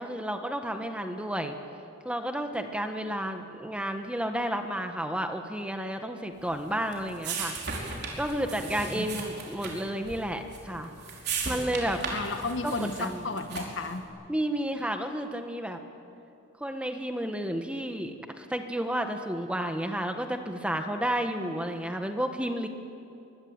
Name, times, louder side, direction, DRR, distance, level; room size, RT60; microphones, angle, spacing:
voice 1, 0.0-1.6 2.0-10.9 11.4-12.0 12.6-13.3 14.3-15.8 16.6-22.7, right 1 dB, 5° right, 6 dB, 1.5 m, -31 dB
sound 1, 6.5-13.9, right 4 dB, 55° right, 4.8 m, -37 dB
voice 2, 12.1-14.1, left 3 dB, 70° left, 7 dB, 1.7 m, -33 dB
23.0 x 22.5 x 9.0 m, 2.7 s
head